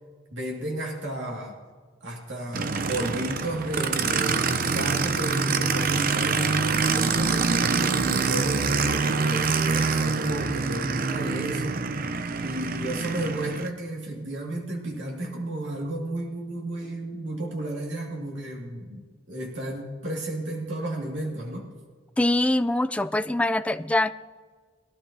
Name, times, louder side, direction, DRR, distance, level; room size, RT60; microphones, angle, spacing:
voice 1, 0.3-1.5 2.0-11.9 12.4-21.7, right 1 dB, 70° right, -1 dB, 2.2 m, -33 dB
Aircraft, 2.5-13.7, right 4 dB, 50° right, 0.6 m, -25 dB
voice 2, 22.2-24.1, left 1 dB, 5° left, 11 dB, 0.3 m, -23 dB
22.0 x 12.0 x 2.8 m, 1.5 s
head